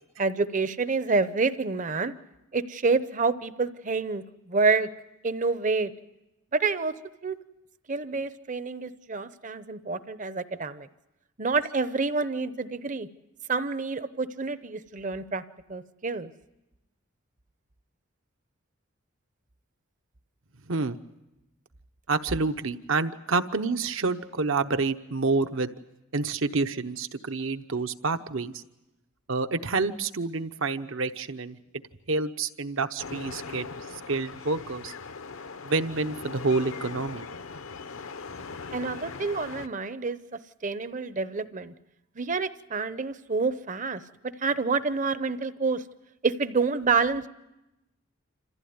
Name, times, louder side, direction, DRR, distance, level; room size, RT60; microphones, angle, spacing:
voice 1, 0.2-2.1 2.5-4.9 5.2-5.9 6.5-6.9 7.2-7.4 7.9-10.9 11.4-13.1 13.5-15.4 15.7-16.3 38.7-40.2 40.6-41.7 42.2-44.0 44.4-45.8 46.2-47.3, right 4 dB, 35° right, 13 dB, 0.8 m, -28 dB
voice 2, 20.7-21.0 22.1-25.7 26.1-28.6 29.3-31.6 32.1-33.7 33.9-34.9 35.6-37.3, right 3 dB, 65° right, 9 dB, 1.0 m, -28 dB
sound 1, 33.0-39.7, left 4 dB, 70° left, 0.8 m, -40 dB
27.0 x 15.5 x 9.5 m, 0.98 s
head